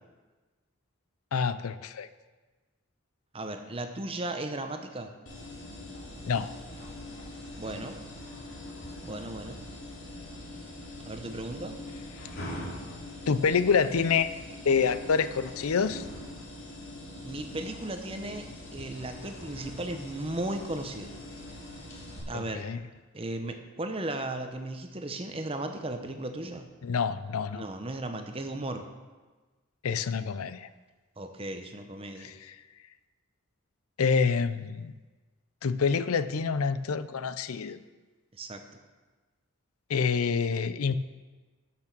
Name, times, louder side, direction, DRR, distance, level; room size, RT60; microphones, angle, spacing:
voice 1, 1.3-2.1 6.3-6.5 13.3-14.3 14.7-16.0 22.3-22.8 26.8-27.6 29.8-30.7 32.2-32.6 34.0-34.9 35.6-37.8 39.9-41.0, left 5 dB, 85° left, 14 dB, 0.5 m, -27 dB
voice 2, 3.3-5.1 7.5-8.0 9.0-9.6 11.1-11.8 17.2-21.2 22.3-22.7 23.1-26.7 27.5-28.9 31.2-32.3 38.3-38.6, right 2 dB, 25° right, 6 dB, 0.8 m, -36 dB
sound 1, 5.3-22.2, left 1 dB, 60° left, 2.6 m, -43 dB
12.5 x 6.1 x 6.0 m, 1.3 s
head